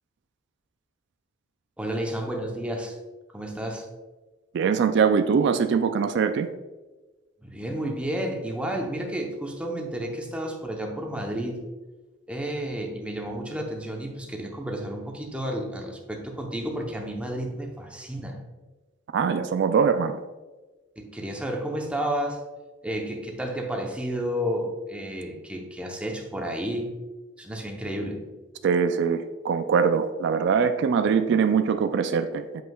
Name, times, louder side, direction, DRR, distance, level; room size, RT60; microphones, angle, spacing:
voice 1, 1.8-3.0 3.3-3.8 7.4-11.6 12.3-18.4 21.0-22.4 22.8-26.9 27.4-28.2, right 1 dB, 5° right, 1 dB, 0.7 m, -31 dB
voice 2, 4.5-6.5 19.1-20.2 28.6-32.6, right 6 dB, 65° right, 9 dB, 0.3 m, -22 dB
7.6 x 5.4 x 2.3 m, 1.2 s
head